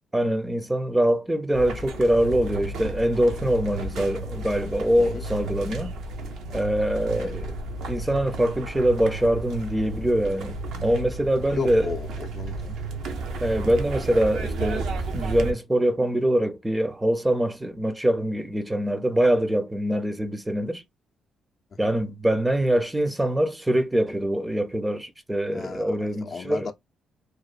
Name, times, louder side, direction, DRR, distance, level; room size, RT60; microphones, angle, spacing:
voice 1, 0.1-5.9 6.5-7.6 7.9-11.9 13.4-20.8 21.8-26.7, right 1 dB, 10° right, 0.5 m, -24 dB
sound 1, 1.5-15.5, right 2 dB, 80° right, 0.6 m, -33 dB
voice 2, 11.5-12.8 21.8-21.9 25.5-25.9 26.2-26.7, left 5 dB, 50° left, 0.5 m, -34 dB
2.9 x 2.0 x 2.4 m
cardioid pair, 90°, 0 cm